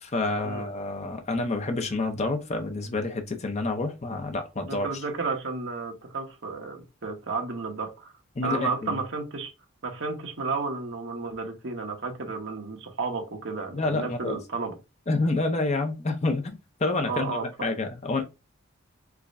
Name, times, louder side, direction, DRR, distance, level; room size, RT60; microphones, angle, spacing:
voice 1, 0.0-4.9 8.4-9.0 13.7-14.4 15.1-18.2, left 2 dB, 30° left, 0.6 m, -28 dB
voice 2, 4.7-8.1 8.4-9.5 9.8-14.7 17.1-17.5, right 4 dB, 60° right, 1.0 m, -32 dB
4.7 x 2.1 x 2.5 m
head